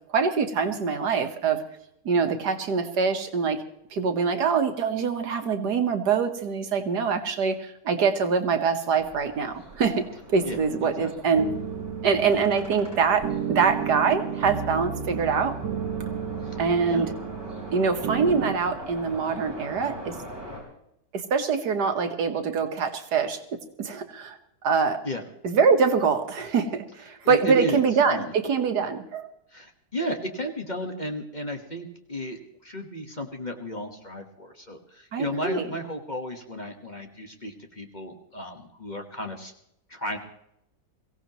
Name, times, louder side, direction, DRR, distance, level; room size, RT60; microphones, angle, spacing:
voice 1, 0.1-1.6 2.1-3.6 3.9-11.5 12.0-15.6 16.6-17.1 17.7-20.2 21.1-24.4 24.6-25.0 25.4-29.3 35.1-35.7, right 5 dB, 70° right, 6 dB, 1.8 m, -24 dB
sound 1, 8.9-20.6, equal, 15° right, 5.3 m, -42 dB
sound 2, 11.4-18.6, right 7 dB, 90° right, 1.6 m, -33 dB
voice 2, 27.2-27.8 28.1-28.3 29.5-39.5 39.9-40.2, equal, 30° left, 3 dB, 1.4 m, -33 dB
23.0 x 16.5 x 3.0 m, 0.79 s
omnidirectional pair, 1.8 m